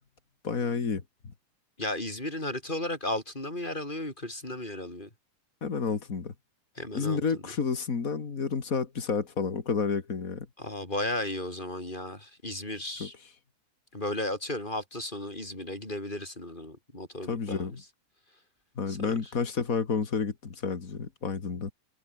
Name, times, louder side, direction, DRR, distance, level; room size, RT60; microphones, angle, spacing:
voice 1, 0.4-1.3 5.6-6.3 6.9-10.5 13.0-13.1 17.3-17.8 18.7-21.7, left 5 dB, 85° left, 0.7 m, -30 dB
voice 2, 1.8-5.1 6.7-7.2 10.6-13.1 13.9-17.7 18.9-19.2, left 1 dB, 10° left, 6.2 m, -34 dB
omnidirectional pair, 5.2 m